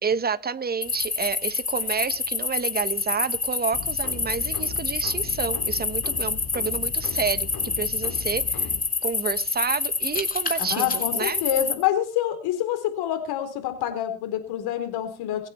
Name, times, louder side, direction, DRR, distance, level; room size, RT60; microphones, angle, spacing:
voice 1, 0.0-8.7 9.0-11.4, right 6 dB, 25° right, 15 dB, 1.2 m, -29 dB
sound 1, 0.8-11.7, left 4 dB, 20° left, 2.8 m, -27 dB
sound 2, 3.7-8.8, left 7 dB, 50° left, 2.8 m, -38 dB
voice 2, 10.6-15.5, left 11 dB, 70° left, 8 dB, 4.0 m, -27 dB
23.5 x 8.1 x 4.4 m, 0.35 s
supercardioid pair, 70°, 39 cm